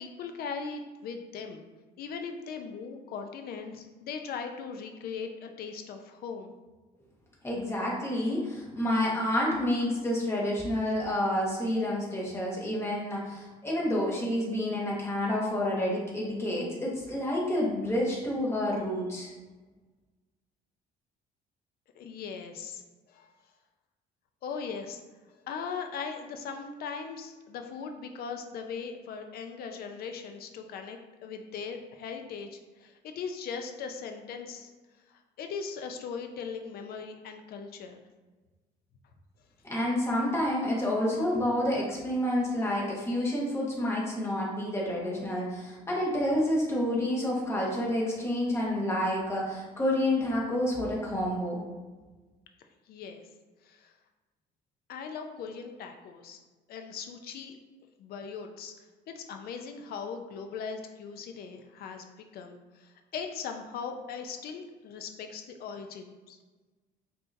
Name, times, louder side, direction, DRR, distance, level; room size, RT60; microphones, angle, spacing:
voice 1, 0.0-1.6 2.0-6.5 22.0-22.8 23.1-23.3 24.4-25.0 25.5-34.7 35.1-38.0 52.9-53.2 53.6-53.9 54.9-56.4 56.7-57.5 58.0-58.7 59.1-62.0 62.3-66.4, left 5 dB, 65° left, 5 dB, 0.5 m, -39 dB
voice 2, 7.4-19.3 39.6-51.6, left 1 dB, 15° left, -4 dB, 1.2 m, -29 dB
5.6 x 2.8 x 2.6 m, 1.3 s
cardioid pair, 110°, 17 cm